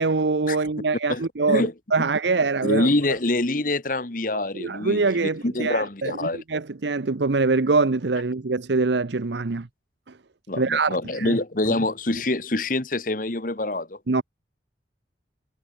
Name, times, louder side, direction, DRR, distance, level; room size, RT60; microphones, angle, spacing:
voice 1, 0.0-2.9 4.5-9.7 10.6-11.4 14.1-14.2, right 3 dB, 75° right, 0.8 m, -24 dB
voice 2, 1.1-1.7 2.6-6.4 10.5-14.0, left 2 dB, 45° left, 1.5 m, -25 dB
head